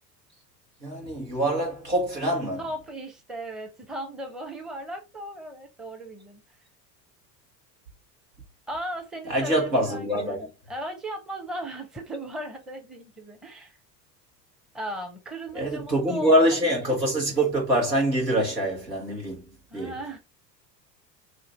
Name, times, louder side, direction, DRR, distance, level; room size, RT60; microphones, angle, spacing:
voice 1, 0.8-2.6 9.3-10.4 15.5-19.4 19.7-19.9, right 1 dB, 90° right, 1.3 m, -24 dB
voice 2, 2.6-6.4 8.7-13.8 14.7-16.5 19.7-20.2, right 1 dB, ahead, 0.6 m, -37 dB
2.8 x 2.5 x 4.2 m
figure-of-eight pair, 70°, 49 cm